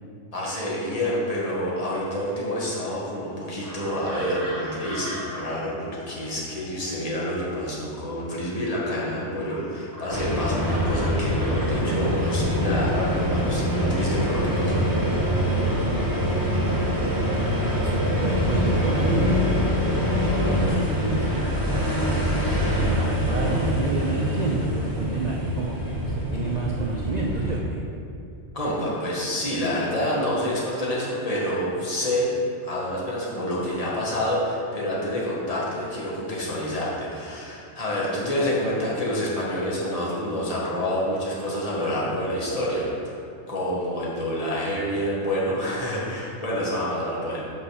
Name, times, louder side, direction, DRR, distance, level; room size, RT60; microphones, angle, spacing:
voice 1, 0.3-14.9 28.5-32.3 32.6-43.1 43.5-47.4, equal, 30° left, -6 dB, 1.5 m, -28 dB
sound 1, 3.6-13.6 13.9-15.9 16.4-18.7 19.9-20.1 20.6-21.0 21.3-21.6, equal, 15° left, 1.4 m, -43 dB
sound 2, 10.1-27.6, equal, 20° right, 1.1 m, -24 dB
voice 2, 17.1-17.4 17.7-21.5 22.0-27.8, right 3 dB, 50° right, -1 dB, 0.5 m, -30 dB
5.8 x 5.0 x 6.3 m, 2.5 s
omnidirectional pair, 1.3 m